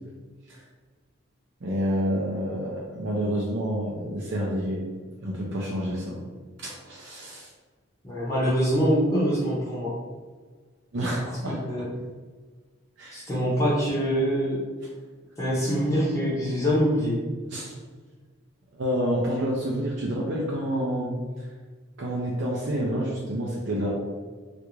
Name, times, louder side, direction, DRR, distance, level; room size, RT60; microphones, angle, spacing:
voice 1, 1.6-4.8 5.2-6.2 6.6-7.5 10.9-11.6 13.0-13.2 17.5-17.7 18.7-21.5 22.0-23.9, equal, 60° right, -3 dB, 0.5 m, -28 dB
voice 2, 8.0-9.9 11.7-11.9 13.1-14.6 15.4-17.2, equal, 15° left, -7 dB, 0.7 m, -24 dB
3.4 x 2.5 x 3.1 m, 1.5 s
head